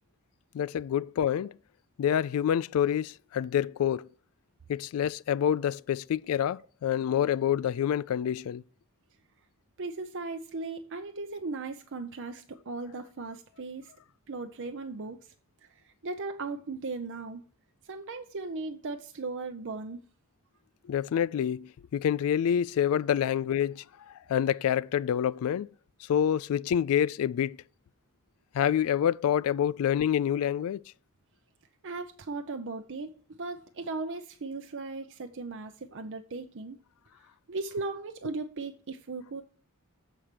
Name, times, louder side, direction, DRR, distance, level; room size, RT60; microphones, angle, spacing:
voice 1, 0.5-1.6 2.0-4.1 4.7-8.6 20.9-25.7 26.1-27.6 28.5-30.8, left 9 dB, 70° left, 0.3 m, -27 dB
voice 2, 9.8-13.9 14.3-15.3 15.6-17.4 17.8-20.0 31.8-36.8 37.5-39.4, right 3 dB, 60° right, 0.7 m, -37 dB
7.3 x 4.6 x 6.7 m
head